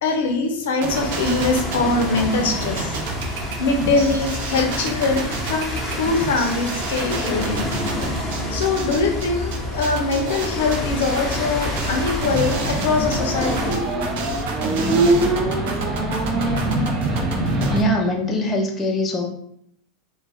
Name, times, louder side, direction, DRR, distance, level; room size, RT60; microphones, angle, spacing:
voice 1, 0.0-3.0 3.6-7.7 8.5-13.8, left 3 dB, 85° left, 3 dB, 0.6 m, -22 dB
sound 1, 0.8-17.8, right 4 dB, 70° right, 0.5 m, -31 dB
sound 2, 0.9-13.7, left 1 dB, 5° right, 0.8 m, -28 dB
sound 3, 10.6-17.8, right 2 dB, 30° right, 0.6 m, -23 dB
voice 2, 17.7-19.3, left 1 dB, 20° left, 1 dB, 0.4 m, -22 dB
2.3 x 2.2 x 3.3 m, 0.70 s
supercardioid pair, 125°, 0 cm